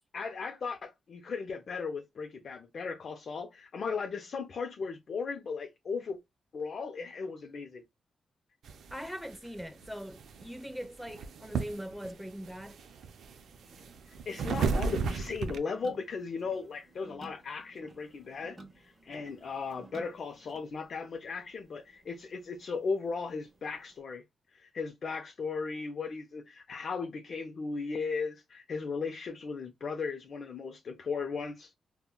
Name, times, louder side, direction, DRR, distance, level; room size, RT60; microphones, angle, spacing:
voice 1, 0.1-6.2 6.5-7.8 14.3-24.2 24.5-31.7, left 5 dB, 60° left, 0.4 m, -37 dB
sound 1, 8.6-15.6, right 5 dB, 80° right, 0.4 m, -34 dB
voice 2, 8.9-12.8, equal, ahead, 0.6 m, -41 dB
sound 2, 13.3-24.0, right 2 dB, 35° right, 0.9 m, -56 dB
3.6 x 2.1 x 2.2 m
cardioid pair, 80°, 0 cm